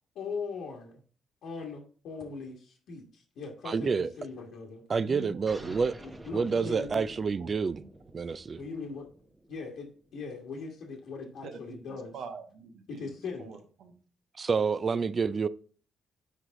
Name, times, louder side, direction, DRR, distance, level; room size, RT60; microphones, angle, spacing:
voice 1, 0.1-1.0 1.4-4.8 6.2-7.0 8.6-9.0 9.5-9.9 10.1-12.1 12.9-13.5, left 4 dB, 80° left, 1.4 m, -40 dB
voice 2, 3.6-4.1 4.9-5.9 6.3-7.8 8.1-8.6 14.4-15.5, right 5 dB, 40° right, 0.4 m, -28 dB
voice 3, 5.0-5.8 6.5-7.0 7.4-7.9 11.4-13.9, right 5 dB, 75° right, 1.1 m, -46 dB
sound 1, 5.5-10.5, right 1 dB, 15° right, 0.8 m, -50 dB
6.7 x 4.7 x 3.7 m
cardioid pair, 90°, 0 cm